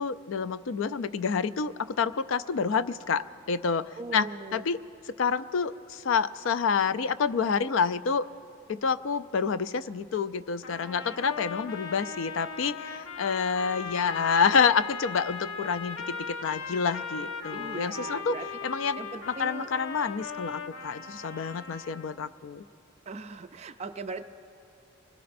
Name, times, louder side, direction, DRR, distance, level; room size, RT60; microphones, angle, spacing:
voice 1, 0.0-4.8 5.2-8.2 8.7-18.4 18.6-19.0 19.3-22.6, left 5 dB, 65° left, 14 dB, 0.4 m, -28 dB
voice 2, 4.0-4.7 17.5-18.5 19.0-19.7 23.1-24.2, right 3 dB, 30° right, 8 dB, 0.4 m, -39 dB
sound 1, 10.6-22.3, left 5 dB, 85° left, 0.8 m, -38 dB
24.5 x 21.0 x 2.6 m, 2.6 s
head